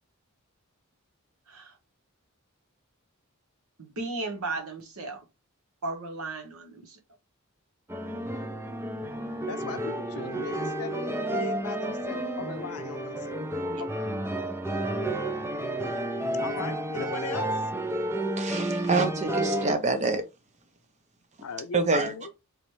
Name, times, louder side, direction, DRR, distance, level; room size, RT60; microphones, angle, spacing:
voice 1, 3.8-5.2 5.8-7.0 13.7-13.8, right 3 dB, 75° right, 1.1 m, -35 dB
sound 1, 7.9-19.7, right 1 dB, 10° right, 0.4 m, -31 dB
voice 2, 9.5-13.4 13.8-14.1 16.4-17.5 21.4-22.3, left 5 dB, 85° left, 0.6 m, -38 dB
voice 3, 18.4-20.2 21.7-22.1, right 3 dB, 30° right, 0.8 m, -26 dB
4.0 x 3.1 x 3.1 m
head